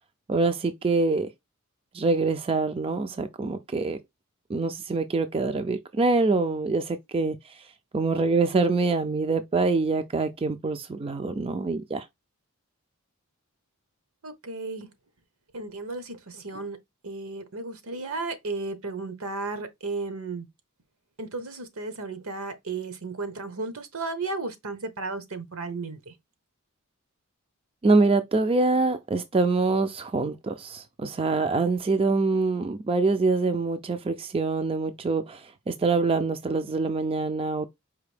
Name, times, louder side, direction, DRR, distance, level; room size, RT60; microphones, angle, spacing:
voice 1, 0.3-1.3 1.9-4.0 4.5-7.4 7.9-12.0 27.8-37.7, right 3 dB, 25° right, 0.4 m, -25 dB
voice 2, 14.2-14.9 15.5-16.8 17.0-20.5 21.2-26.1, right 3 dB, 75° right, 1.1 m, -34 dB
4.8 x 2.6 x 3.3 m
head